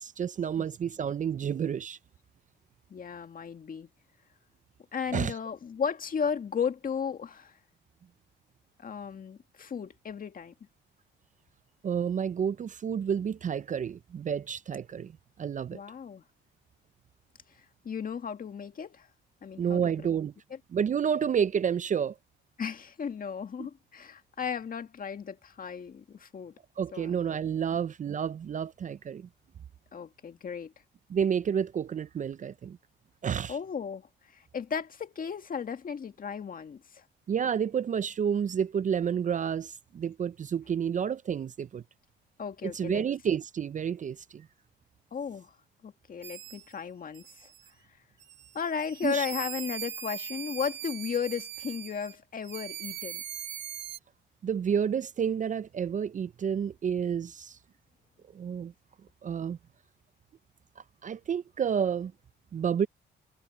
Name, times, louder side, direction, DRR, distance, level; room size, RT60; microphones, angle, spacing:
voice 1, 0.0-2.0 5.1-5.3 11.8-15.1 15.4-15.8 19.6-20.3 20.7-22.1 23.6-23.7 26.8-29.3 31.1-32.8 33.2-33.6 37.3-41.8 42.6-44.5 49.0-49.3 54.4-57.6 58.3-58.7 59.2-59.6 61.0-62.1 62.5-62.9, right 7 dB, 40° right, 0.5 m, -30 dB
voice 2, 2.9-3.9 4.9-7.6 8.8-10.5 15.7-16.2 17.8-19.1 19.4-20.1 20.5-20.6 22.6-26.6 26.9-27.1 27.7-27.8 29.9-30.7 33.5-37.0 42.4-43.1 45.1-45.6 45.8-47.5 48.5-53.2, left 6 dB, 45° left, 2.0 m, -35 dB
sound 1, 46.2-46.7 47.1-47.7 48.2-52.2 52.4-54.0, right 10 dB, 70° right, 3.9 m, -41 dB
cardioid pair, 90°, 20 cm